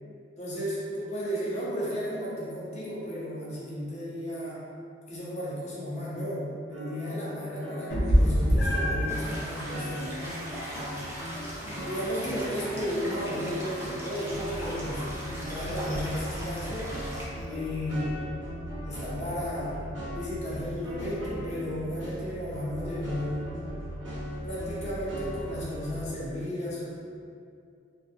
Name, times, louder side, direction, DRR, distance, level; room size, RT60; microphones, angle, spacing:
voice 1, 0.4-4.6 5.1-10.4 11.9-15.0 15.4-16.9 17.5-18.2 18.8-19.8 20.1-23.5 24.4-26.9, equal, 40° left, -7 dB, 0.6 m, -34 dB
sound 1, 6.7-14.0 14.3-26.1, equal, 70° right, 0.9 m, -38 dB
Meow, 7.9-17.5, equal, 85° left, 0.7 m, -31 dB
sound 2, 9.1-17.3, equal, 15° right, 0.4 m, -40 dB
2.2 x 2.2 x 2.6 m, 2.4 s
head